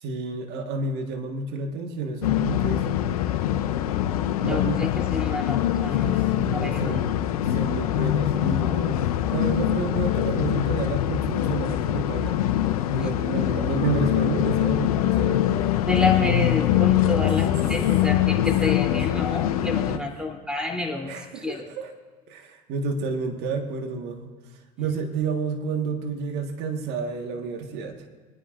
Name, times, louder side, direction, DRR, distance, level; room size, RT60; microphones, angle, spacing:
voice 1, 0.0-3.1 3.9-4.0 4.4-4.8 5.8-7.2 7.5-9.0 9.3-12.4 12.9-15.5 17.0-17.3 19.8-20.0 21.1-21.9 22.3-24.3 24.8-28.1, right 4 dB, 65° right, 4 dB, 1.6 m, -30 dB
sound 1, 2.2-20.0, left 12 dB, 90° left, 0.7 m, -23 dB
voice 2, 4.4-6.2 6.5-7.0 15.9-21.6, left 2 dB, 5° right, 1 dB, 3.3 m, -29 dB
23.5 x 10.0 x 2.6 m, 1.4 s
hypercardioid pair, 75°, 19 cm